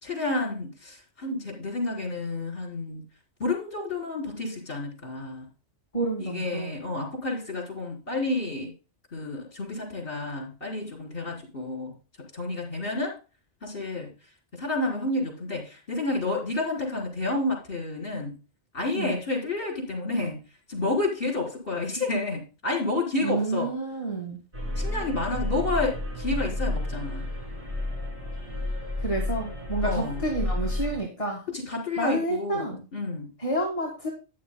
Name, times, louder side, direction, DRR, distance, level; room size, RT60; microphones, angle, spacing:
voice 1, 0.0-3.0 3.4-5.5 6.2-8.7 9.1-11.9 12.3-13.1 13.6-14.1 14.6-18.3 18.7-20.4 20.7-23.7 24.8-27.3 29.8-30.2 31.5-33.3, left 2 dB, 50° left, -1 dB, 4.4 m, -30 dB
voice 2, 5.9-6.7 18.9-19.2 23.2-24.4 29.0-31.4 32.0-32.8 33.4-34.1, right 2 dB, 30° left, -1 dB, 2.0 m, -29 dB
sound 1, 24.5-31.0, left 1 dB, 65° right, 5.3 m, -31 dB
13.0 x 10.5 x 2.2 m, 0.32 s
omnidirectional pair, 1.2 m